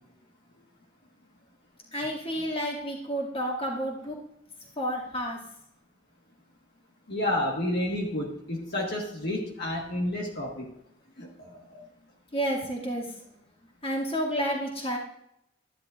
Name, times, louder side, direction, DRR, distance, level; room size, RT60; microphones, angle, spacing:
voice 1, 1.9-4.2 4.8-5.4 12.3-13.4 13.8-15.0, equal, 30° left, -3 dB, 2.4 m, -30 dB
voice 2, 7.1-10.7 11.2-11.8, left 1 dB, 60° left, -2 dB, 1.6 m, -30 dB
13.5 x 10.5 x 2.5 m, 0.79 s
head